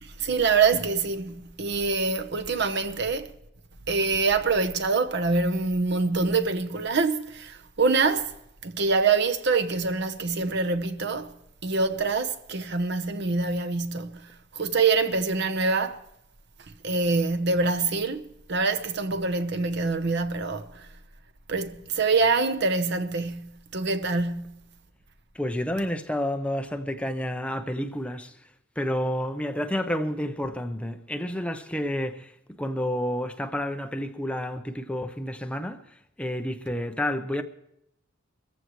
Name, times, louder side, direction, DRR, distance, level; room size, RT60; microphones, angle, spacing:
voice 1, 0.0-3.3 3.9-8.3 8.6-11.3 11.6-16.0 16.8-20.9 21.5-24.6, right 4 dB, 60° right, 0.9 m, -25 dB
voice 2, 25.3-28.4 28.8-32.3 32.6-35.8 36.2-37.4, equal, 5° left, 0.7 m, -30 dB
24.5 x 14.5 x 3.1 m
head